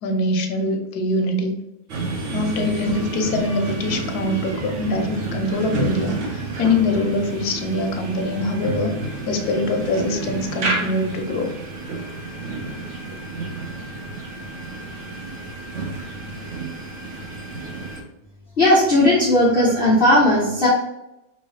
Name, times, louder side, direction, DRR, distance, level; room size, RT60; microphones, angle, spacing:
voice 1, 0.0-1.6 2.3-8.9 9.3-11.5, left 2 dB, 90° left, 5 dB, 1.3 m, -23 dB
sound 1, 1.9-18.0, right 3 dB, 55° right, 1.1 m, -30 dB
voice 2, 18.6-20.7, left 1 dB, 40° left, -7 dB, 1.2 m, -16 dB
5.3 x 3.0 x 3.2 m, 0.87 s
omnidirectional pair, 1.6 m